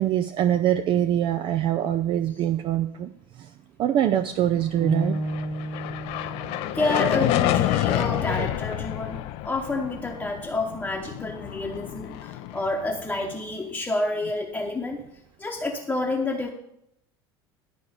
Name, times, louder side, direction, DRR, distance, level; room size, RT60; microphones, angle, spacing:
voice 1, 0.0-3.1 3.8-5.2 8.4-8.5, right 11 dB, 40° right, 10 dB, 0.4 m, -23 dB
sound 1, 4.8-8.9, right 1 dB, 75° right, 3.6 m, -34 dB
sound 2, 5.0-13.4, left 14 dB, 50° left, 0.5 m, -28 dB
voice 2, 6.7-15.0 15.4-16.5, left 2 dB, 10° left, 0 dB, 1.0 m, -29 dB
11.5 x 4.6 x 6.6 m, 0.77 s
figure-of-eight pair, 70°, 13 cm